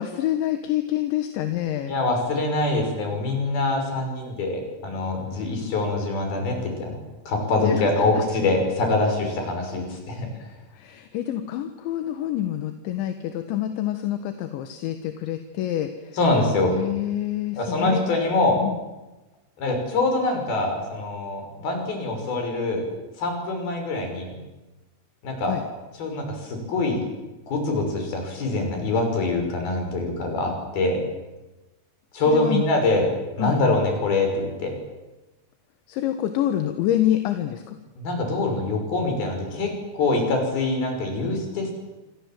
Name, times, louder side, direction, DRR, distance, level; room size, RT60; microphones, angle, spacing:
voice 1, 0.0-1.9 7.6-8.3 10.7-16.2 16.6-18.1 18.6-18.8 25.5-25.6 32.3-32.6 33.4-33.6 35.9-37.8, left 12 dB, 70° left, 7 dB, 3.4 m, -27 dB
voice 2, 1.9-7.0 7.3-10.3 16.1-16.7 17.6-18.6 19.6-22.8 23.2-24.4 25.2-25.6 25.9-27.0 27.5-31.0 32.1-33.1 33.4-34.7 38.0-41.7, left 2 dB, 45° left, 3 dB, 7.7 m, -24 dB
27.0 x 26.0 x 7.7 m, 1.1 s
omnidirectional pair, 6.0 m